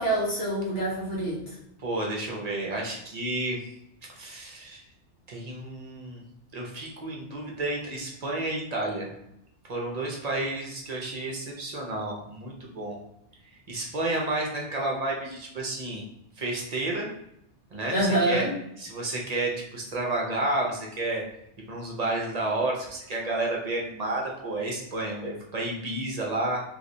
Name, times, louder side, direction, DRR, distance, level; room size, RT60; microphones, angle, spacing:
voice 1, 0.0-1.5 17.9-18.6, right 1 dB, 75° left, -6 dB, 1.6 m, -26 dB
voice 2, 1.8-3.6 4.1-4.8 5.3-6.2 6.5-9.1 9.7-13.0 13.7-16.0 16.4-17.1 17.7-18.4 18.8-21.2 21.7-26.6, right 2 dB, 40° right, -1 dB, 0.7 m, -31 dB
3.2 x 3.1 x 2.6 m, 0.80 s
omnidirectional pair, 1.2 m